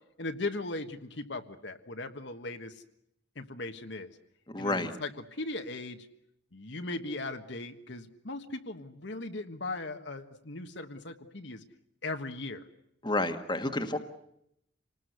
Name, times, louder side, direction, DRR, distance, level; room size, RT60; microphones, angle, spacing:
voice 1, 0.2-2.8 3.3-4.1 4.6-6.1 6.5-11.6 12.0-12.6, left 2 dB, 60° left, 6 dB, 1.5 m, -38 dB
voice 2, 4.5-4.9 13.0-14.0, left 2 dB, 20° left, 6 dB, 1.6 m, -30 dB
27.5 x 19.5 x 8.1 m, 0.77 s
head